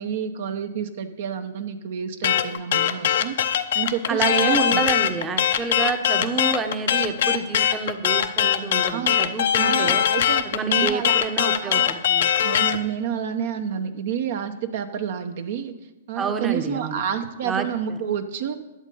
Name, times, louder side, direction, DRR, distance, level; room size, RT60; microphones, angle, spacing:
voice 1, 0.0-3.3 3.7-4.8 8.8-9.2 9.5-11.2 11.6-11.9 12.4-15.7 16.1-18.5, right 8 dB, 60° right, 8 dB, 0.9 m, -29 dB
sound 1, 2.2-12.8, left 10 dB, 65° left, 0.7 m, -21 dB
voice 2, 4.1-10.0 10.4-12.3 16.2-17.0 17.4-17.7, right 5 dB, 20° right, 7 dB, 0.9 m, -28 dB
11.0 x 7.3 x 5.5 m, 1.0 s
hypercardioid pair, 120°, 0 cm